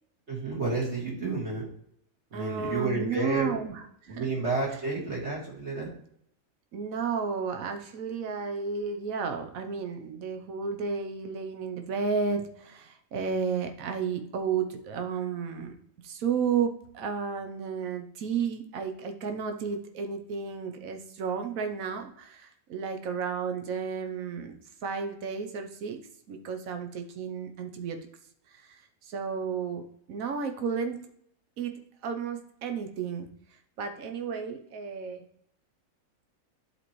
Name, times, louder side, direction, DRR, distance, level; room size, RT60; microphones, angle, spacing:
voice 1, 0.3-1.7 2.3-3.6 4.1-5.9, right 3 dB, 55° right, -4 dB, 2.2 m, -30 dB
voice 2, 2.3-4.3 6.7-15.8 16.0-26.0 26.3-28.0 28.5-28.8 29.1-31.1 31.6-33.3 33.8-35.2, right 6 dB, 80° right, 6 dB, 1.3 m, -32 dB
10.5 x 4.3 x 3.1 m, 0.70 s
omnidirectional pair, 1.4 m